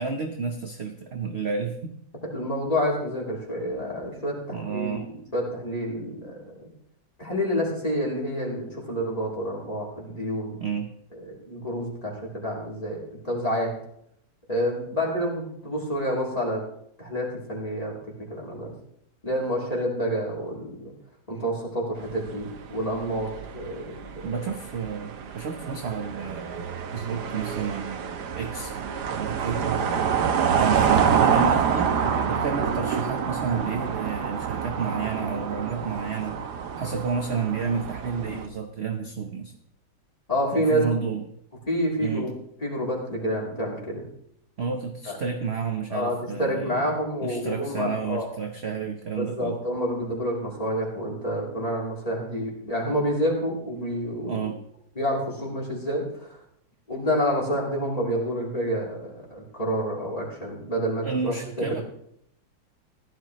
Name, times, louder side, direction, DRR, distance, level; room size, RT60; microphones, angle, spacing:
voice 1, 0.0-2.0 4.5-5.1 10.6-10.9 24.2-28.7 29.2-29.8 30.5-36.4 36.8-39.5 40.5-41.2 42.0-42.3 44.6-46.9 47.2-49.6 54.3-54.5 61.0-61.8, right 6 dB, 45° right, 4 dB, 0.9 m, -31 dB
voice 2, 2.3-6.7 7.2-10.6 11.1-13.7 14.5-16.6 17.0-18.7 19.2-20.9 21.3-24.3 40.3-40.8 41.7-44.0 45.1-45.2 45.9-48.3 49.2-54.5 54.9-56.4 56.9-61.8, equal, 20° left, -3 dB, 3.4 m, -28 dB
sound 1, 22.0-38.5, right 7 dB, 65° right, 1.4 m, -27 dB
16.0 x 12.0 x 3.1 m, 0.69 s
omnidirectional pair, 2.1 m